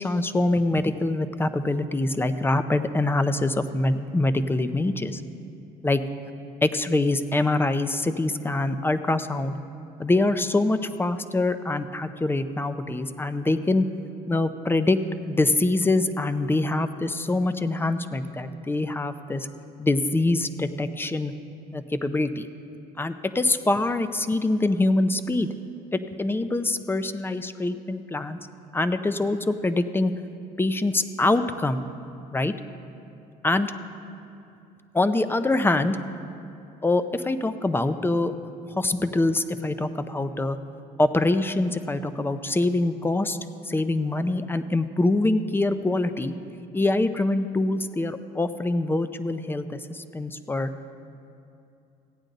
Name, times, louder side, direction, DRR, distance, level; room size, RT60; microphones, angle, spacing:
voice 1, 0.0-5.2 5.8-6.0 6.6-9.5 10.0-13.8 14.3-15.0 15.3-19.5 19.8-21.3 21.7-22.5 23.0-25.5 25.9-28.4 28.7-30.1 30.6-31.8 32.3-32.5 33.4-33.7 34.9-36.0 36.8-38.3 38.8-40.6 41.0-43.4 43.6-46.3 46.7-50.7, left 2 dB, 15° left, 11 dB, 0.5 m, -24 dB
15.5 x 8.9 x 4.0 m, 2.6 s
supercardioid pair, 90°, 17 cm